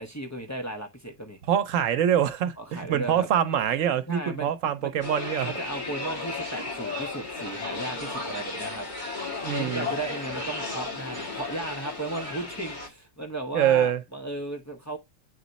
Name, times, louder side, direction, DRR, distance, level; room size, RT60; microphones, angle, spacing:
voice 1, 0.0-1.4 2.6-3.3 4.1-4.5 4.8-4.9 5.4-8.9 9.6-15.0, right 2 dB, 15° left, 0.9 m, -35 dB
voice 2, 1.5-5.5 9.4-9.9 13.5-14.0, right 9 dB, 80° right, 1.1 m, -24 dB
sound 1, 5.0-12.9, left 3 dB, 35° left, 1.8 m, -34 dB
8.2 x 3.0 x 4.0 m
omnidirectional pair, 1.3 m